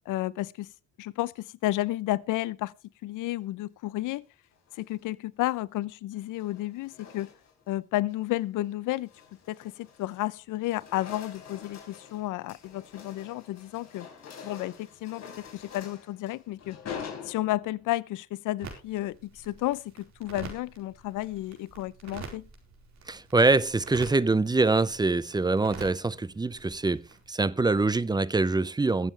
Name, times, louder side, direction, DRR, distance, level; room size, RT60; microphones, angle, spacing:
voice 1, 0.1-0.7 1.0-2.7 3.0-4.2 4.8-7.3 7.7-9.1 9.5-14.1 14.4-15.3 15.5-16.8 17.2-22.5, left 16 dB, 90° left, 0.7 m, -32 dB
sound 1, 4.5-5.0 6.1-7.7 8.1-8.4 8.9-10.3 10.6-17.9, left 7 dB, 60° left, 4.4 m, -45 dB
sound 2, 18.6-27.3, right 5 dB, 65° right, 4.5 m, -47 dB
voice 2, 23.1-29.1, right 3 dB, 15° right, 0.5 m, -24 dB
22.0 x 7.4 x 3.3 m
cardioid pair, 90°, 30 cm